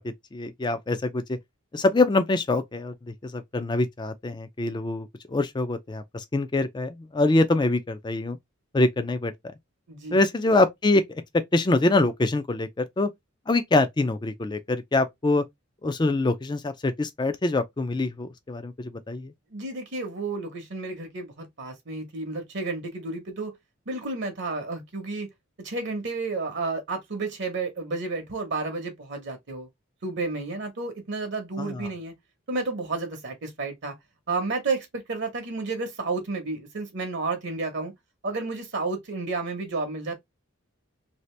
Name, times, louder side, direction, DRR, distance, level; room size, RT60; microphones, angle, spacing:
voice 1, 0.3-1.4 1.7-2.9 3.2-8.4 8.7-9.3 10.1-11.2 11.5-13.1 13.5-15.4 15.8-19.3 31.6-31.8, left 2 dB, 20° left, 0.4 m, -24 dB
voice 2, 9.9-10.2 19.5-23.6 23.9-25.3 25.6-29.7 30.0-32.1 32.5-33.9 34.3-37.9 38.2-40.1, right 3 dB, 55° right, 0.8 m, -31 dB
2.8 x 2.5 x 3.1 m
head